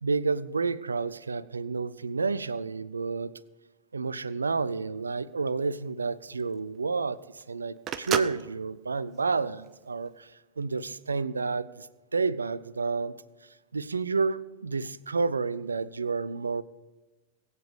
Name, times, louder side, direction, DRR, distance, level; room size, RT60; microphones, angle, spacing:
voice 1, 0.0-3.3 3.9-10.3 10.6-11.9 12.1-13.1 13.7-16.6, right 4 dB, 75° right, 19 dB, 0.5 m, -30 dB
Telephone, 5.0-10.2, right 9 dB, 30° right, 0.7 m, -36 dB
22.0 x 8.2 x 4.9 m, 1.2 s
figure-of-eight pair, 90°, 0 cm